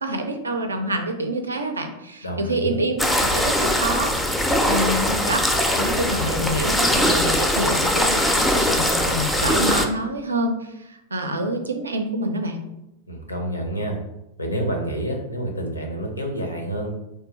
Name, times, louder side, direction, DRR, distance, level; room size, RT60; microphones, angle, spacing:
voice 1, 0.0-4.1 4.7-12.6, right 1 dB, 75° right, 5 dB, 0.4 m, -27 dB
voice 2, 2.2-2.8 13.1-14.0 14.4-16.9, right 1 dB, 85° left, 2 dB, 0.6 m, -28 dB
sound 1, 3.0-9.8, equal, 5° left, 0.3 m, -21 dB
3.2 x 2.2 x 3.1 m, 0.88 s
figure-of-eight pair, 90°, 0 cm